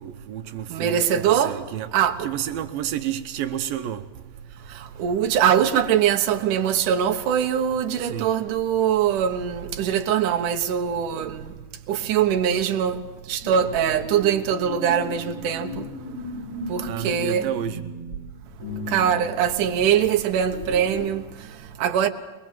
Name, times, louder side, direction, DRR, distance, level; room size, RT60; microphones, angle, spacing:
voice 1, 0.0-1.9 2.2-4.1 8.0-8.3 16.9-17.9, right 10 dB, 85° right, 2.7 m, -30 dB
voice 2, 0.7-1.6 1.9-2.3 4.7-11.5 11.9-13.0 13.3-15.9 16.7-17.5 18.9-22.1, right 9 dB, 70° right, 2.7 m, -22 dB
sound 1, 13.4-21.1, left 1 dB, 20° left, 4.7 m, -36 dB
23.0 x 22.0 x 7.5 m
omnidirectional pair, 4.0 m